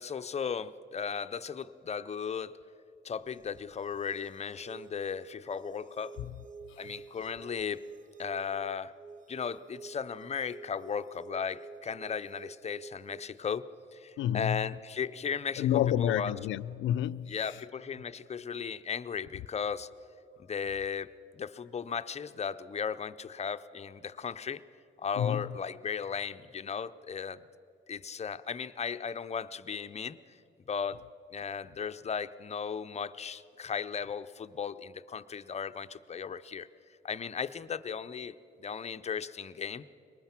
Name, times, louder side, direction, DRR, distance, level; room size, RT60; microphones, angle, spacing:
voice 1, 0.0-2.6 3.0-6.2 6.8-7.8 8.2-8.9 9.3-15.7 16.0-16.4 17.3-19.9 20.5-24.6 25.0-27.4 27.9-30.2 30.7-31.0 31.3-36.7 37.0-39.8, left 6 dB, 35° left, 0.6 m, -36 dB
sound 1, 3.3-13.3, right 5 dB, 40° right, 0.6 m, -50 dB
voice 2, 14.2-14.7 15.6-17.4 25.2-25.5, left 11 dB, 75° left, 0.5 m, -29 dB
23.0 x 19.5 x 6.0 m
cardioid pair, 90°, 20 cm